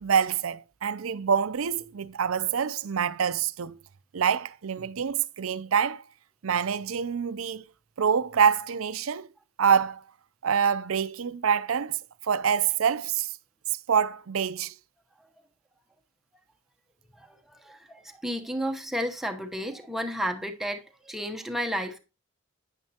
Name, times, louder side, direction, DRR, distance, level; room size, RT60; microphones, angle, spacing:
voice 1, 0.0-3.8 4.1-6.0 6.4-7.6 8.0-9.3 9.6-10.0 10.4-12.0 12.2-13.3 13.9-14.7, right 7 dB, 85° right, 0.5 m, -26 dB
voice 2, 17.2-22.0, equal, ahead, 0.9 m, -32 dB
9.7 x 8.9 x 2.9 m
head